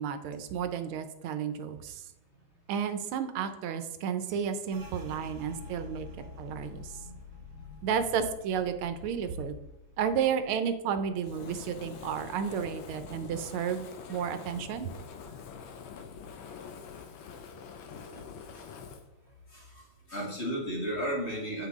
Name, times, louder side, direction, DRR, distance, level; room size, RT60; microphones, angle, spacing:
voice 1, 0.0-2.0 2.7-6.1 6.4-7.0 7.8-9.5 10.0-14.9, right 7 dB, 90° right, 9 dB, 1.6 m, -32 dB
sound 1, 4.7-14.1 14.4-15.6 16.0-16.4 16.9-17.5, left 4 dB, 55° right, 1.5 m, -50 dB
Fire, 11.2-19.0, left 6 dB, 75° left, 1.5 m, -45 dB
voice 2, 19.5-19.8 20.1-21.7, equal, 35° left, -2 dB, 1.8 m, -35 dB
8.1 x 5.8 x 3.5 m, 0.90 s
omnidirectional pair, 2.3 m